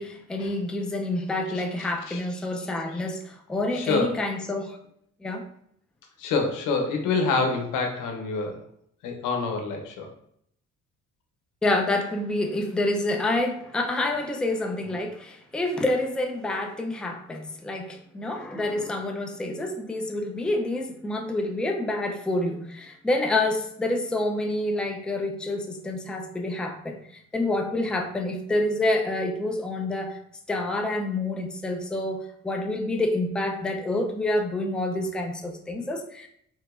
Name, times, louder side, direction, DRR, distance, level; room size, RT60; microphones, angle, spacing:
voice 1, 0.0-4.8 5.2-5.4 11.6-27.0 27.3-30.2 30.5-32.2 32.4-36.3, left 2 dB, 5° left, 0.4 m, -28 dB
voice 2, 3.7-4.2 6.2-8.6 9.0-10.1, left 4 dB, 90° left, 0.7 m, -27 dB
3.5 x 2.8 x 2.4 m
cardioid pair, 90°, 30 cm